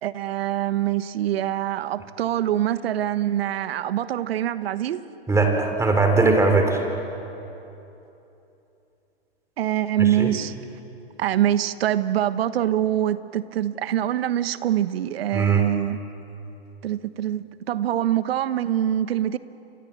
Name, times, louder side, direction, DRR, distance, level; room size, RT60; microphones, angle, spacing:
voice 1, 0.0-5.0 9.6-10.5 11.2-16.0 16.8-19.4, right 11 dB, 65° right, 14 dB, 1.2 m, -24 dB
voice 2, 5.3-6.8 10.0-10.3 15.3-15.6, right 3 dB, 10° right, 4 dB, 3.8 m, -20 dB
29.5 x 24.5 x 7.5 m, 2.9 s
hypercardioid pair, 110°, 32 cm